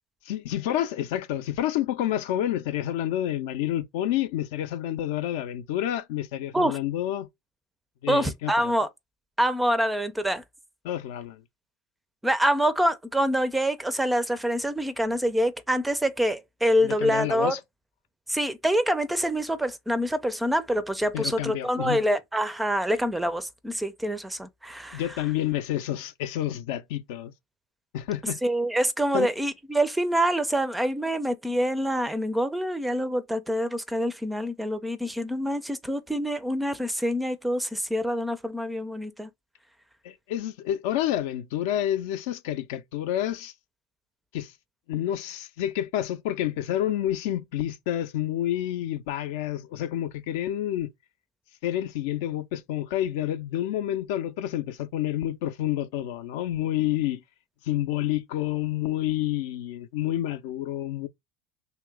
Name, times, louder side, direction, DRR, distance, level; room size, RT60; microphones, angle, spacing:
voice 1, 0.3-7.3 8.0-8.7 10.8-11.4 16.8-17.6 21.1-22.0 24.9-27.3 27.9-28.4 29.1-29.3 40.0-43.5 44.3-44.5 44.9-50.9 51.6-57.2 57.6-61.1, left 12 dB, 70° left, 0.5 m, -29 dB
voice 2, 8.1-8.9 9.4-10.4 12.2-17.6 18.3-25.0 28.4-39.3, equal, 5° right, 0.4 m, -26 dB
3.0 x 2.8 x 3.5 m
supercardioid pair, 125°, 0 cm